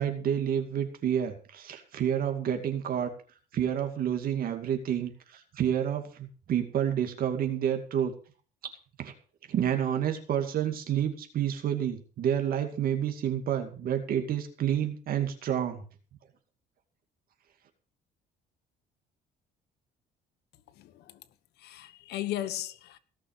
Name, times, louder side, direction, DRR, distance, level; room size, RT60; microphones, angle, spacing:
voice 1, 0.0-3.1 3.5-8.1 9.0-9.1 9.5-15.8, right 9 dB, 60° right, 2.3 m, -29 dB
voice 2, 20.7-21.2 21.6-23.0, left 13 dB, 75° left, 1.3 m, -36 dB
17.5 x 6.2 x 7.4 m
cardioid pair, 110°, 17 cm